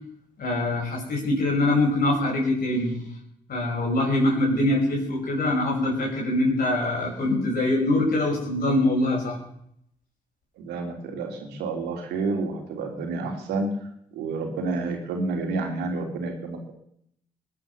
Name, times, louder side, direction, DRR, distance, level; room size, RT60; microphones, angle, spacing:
voice 1, 0.4-3.0 3.5-9.4, left 1 dB, 65° left, -3 dB, 5.7 m, -23 dB
voice 2, 10.6-13.7 14.1-16.7, right 3 dB, 80° right, 3 dB, 3.2 m, -29 dB
20.5 x 8.4 x 7.0 m, 0.71 s
hypercardioid pair, 45°, 17 cm